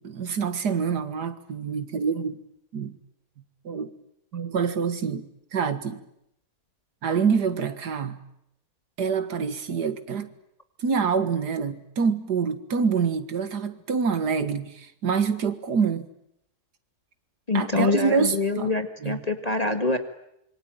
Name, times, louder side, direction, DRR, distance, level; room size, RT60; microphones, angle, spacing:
voice 1, 0.0-2.4 2.7-2.9 3.6-3.9 4.3-5.3 5.5-6.0 7.0-8.2 9.0-10.3 10.8-16.1 17.5-18.7 19.0-19.2, right 6 dB, 90° right, 2.2 m, -26 dB
voice 2, 17.5-20.0, left 3 dB, 25° left, 1.8 m, -25 dB
26.5 x 24.0 x 9.0 m
omnidirectional pair, 1.7 m